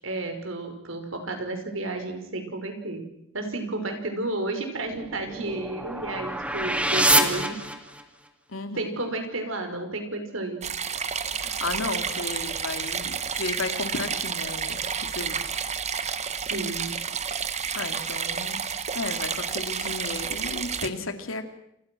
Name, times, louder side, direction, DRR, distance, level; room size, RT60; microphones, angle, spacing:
voice 1, 0.0-3.0 3.3-7.6 8.8-10.6 16.5-16.9, right 2 dB, 70° right, 6 dB, 5.5 m, -32 dB
sound 1, 4.9-8.3, right 1 dB, 5° right, 2.5 m, -26 dB
voice 2, 8.5-9.0 11.4-15.6 17.7-18.6 18.9-21.5, left 3 dB, 75° left, 7 dB, 3.0 m, -34 dB
sound 2, 10.6-20.9, right 6 dB, 35° right, 1.5 m, -30 dB
29.0 x 28.5 x 6.3 m, 0.82 s
head